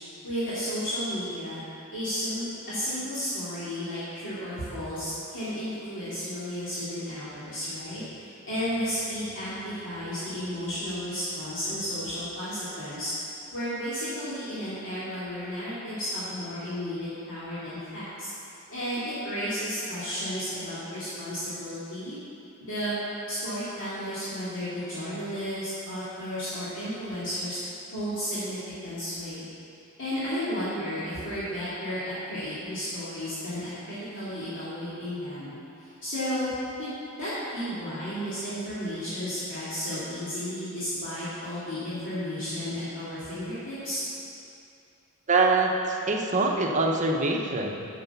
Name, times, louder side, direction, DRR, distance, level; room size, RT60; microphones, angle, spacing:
voice 1, 0.2-1.6 1.9-13.1 13.5-18.3 18.7-22.1 22.6-22.9 23.3-27.6 27.9-29.4 30.0-32.0 32.3-35.5 35.8-36.5 36.8-44.0, equal, 65° left, -13 dB, 2.7 m, -33 dB
voice 2, 45.3-47.9, right 3 dB, 35° right, 1 dB, 0.9 m, -24 dB
8.6 x 6.7 x 6.9 m, 2.7 s
head